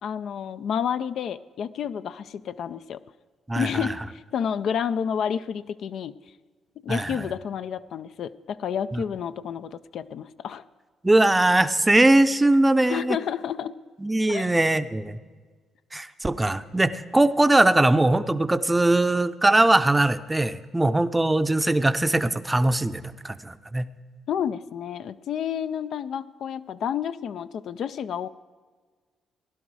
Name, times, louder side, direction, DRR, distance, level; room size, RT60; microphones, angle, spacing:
voice 1, 0.0-3.0 3.5-6.1 6.8-10.6 12.9-13.7 14.3-14.5 24.3-28.3, left 8 dB, 70° left, 13 dB, 0.4 m, -30 dB
voice 2, 3.5-3.9 6.9-7.2 8.9-9.0 11.0-13.2 14.0-15.2 15.9-23.9, right 2 dB, 15° right, 12 dB, 0.6 m, -21 dB
16.5 x 11.0 x 4.7 m, 1.5 s
cardioid pair, 90°, 0 cm